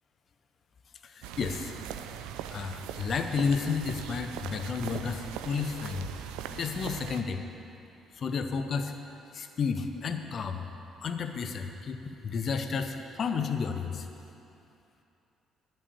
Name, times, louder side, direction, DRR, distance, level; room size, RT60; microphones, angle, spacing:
voice 1, 1.0-1.7 2.5-6.1 6.5-7.4 8.2-8.9 9.3-10.6 11.0-14.1, left 5 dB, 50° left, 7 dB, 0.8 m, -32 dB
sound 1, 1.2-7.2, right 9 dB, 70° right, 0.4 m, -40 dB
11.0 x 5.6 x 8.5 m, 2.8 s
figure-of-eight pair, 45°, 0 cm